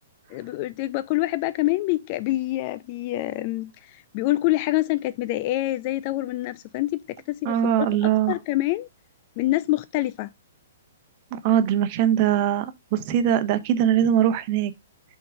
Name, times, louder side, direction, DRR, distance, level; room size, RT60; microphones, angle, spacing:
voice 1, 0.3-8.9 9.4-10.3, left 17 dB, 40° left, 0.3 m, -26 dB
voice 2, 7.4-8.3 11.3-14.7, right 10 dB, 40° right, 0.9 m, -21 dB
5.4 x 3.9 x 5.3 m
figure-of-eight pair, 120°, 0 cm